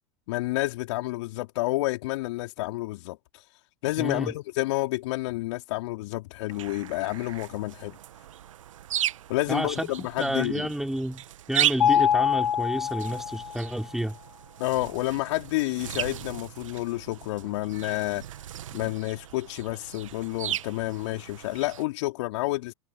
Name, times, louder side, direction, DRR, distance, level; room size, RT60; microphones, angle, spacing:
voice 1, 0.3-3.2 3.8-8.0 9.3-10.7 14.6-18.2 18.7-22.7, left 19 dB, 60° left, 3.7 m, -29 dB
voice 2, 4.0-4.3 9.5-14.2, right 1 dB, ahead, 3.6 m, -30 dB
sound 1, 6.5-21.8, right 11 dB, 75° right, 2.0 m, -36 dB
Mallet percussion, 11.8-13.8, left 9 dB, 85° left, 1.4 m, -24 dB
hypercardioid pair, 90°, 17 cm